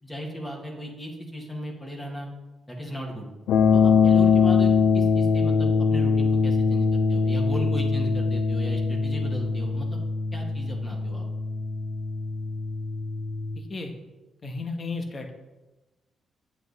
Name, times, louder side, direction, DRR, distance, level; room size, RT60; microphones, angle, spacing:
voice 1, 0.0-2.3 2.7-3.3 3.7-10.0 10.3-11.2, equal, 15° left, -1 dB, 2.0 m, -36 dB
sound 1, 3.5-13.6, left 5 dB, 85° left, 0.5 m, -22 dB
voice 2, 13.5-13.9 14.4-15.3, left 3 dB, 40° left, 4 dB, 1.5 m, -33 dB
7.9 x 7.6 x 4.2 m, 1.1 s
cardioid pair, 85°, 0 cm